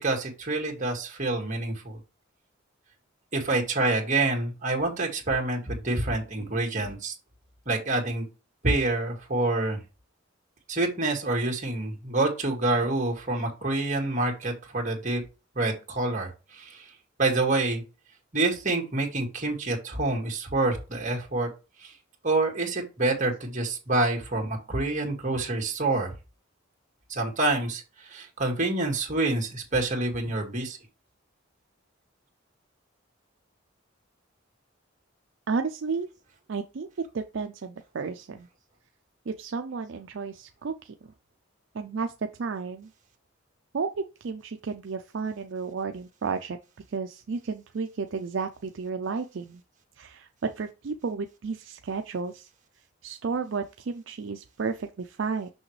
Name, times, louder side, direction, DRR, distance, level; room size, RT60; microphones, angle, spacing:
voice 1, 0.0-2.0 3.3-7.1 7.7-8.3 8.6-9.8 10.7-15.2 15.6-16.9 17.2-17.8 18.3-21.5 21.8-21.9 22.2-26.1 27.1-30.8, right 2 dB, 40° right, 1 dB, 2.0 m, -27 dB
voice 2, 35.5-36.1 36.5-36.9 37.1-38.5 39.3-40.9 41.7-42.1 42.4-42.9 43.7-43.9 44.2-46.6 46.9-49.6 50.0-52.5 53.0-55.5, right 5 dB, 65° right, 7 dB, 0.5 m, -32 dB
6.2 x 6.0 x 3.2 m, 0.30 s
head